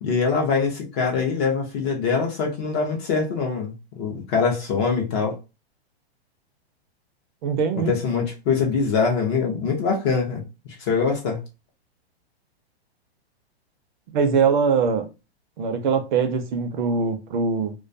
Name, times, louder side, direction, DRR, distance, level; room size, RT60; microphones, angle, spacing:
voice 1, 0.0-5.4 7.9-11.4, left 5 dB, 25° left, 0.4 m, -23 dB
voice 2, 7.4-8.0 14.1-15.1 15.6-17.7, right 5 dB, 50° right, 0.5 m, -22 dB
2.2 x 2.2 x 2.5 m
hypercardioid pair, 145°, 32 cm